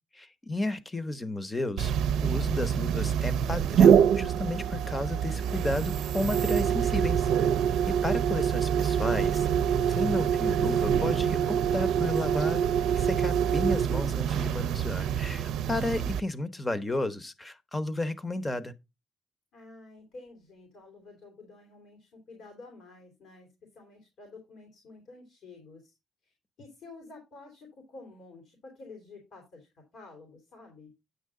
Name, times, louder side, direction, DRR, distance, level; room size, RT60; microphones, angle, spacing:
voice 1, 0.1-7.3 7.9-9.5 9.9-12.7 12.9-18.7, left 2 dB, 20° left, 1.0 m, -33 dB
sound 1, 1.8-16.2, right 8 dB, 80° right, 0.5 m, -25 dB
voice 2, 7.8-8.5 19.5-23.5 23.7-25.9 26.2-30.9, left 3 dB, 75° left, 3.1 m, -50 dB
9.5 x 6.3 x 3.7 m
cardioid pair, 90°, 0 cm